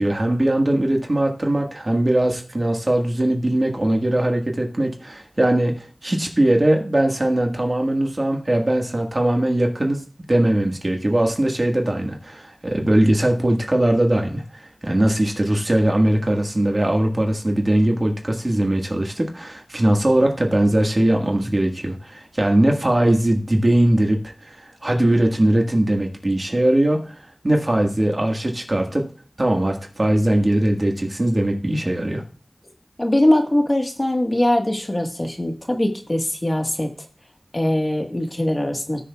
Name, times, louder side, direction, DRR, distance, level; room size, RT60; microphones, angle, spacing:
voice 1, 0.0-10.0 10.3-29.1 29.4-32.2, right 1 dB, 45° right, 2 dB, 1.6 m, -20 dB
voice 2, 33.0-36.9 37.5-39.0, left 1 dB, 35° left, 4 dB, 1.5 m, -21 dB
17.5 x 6.8 x 2.4 m, 0.40 s
wide cardioid pair, 45°, 0 cm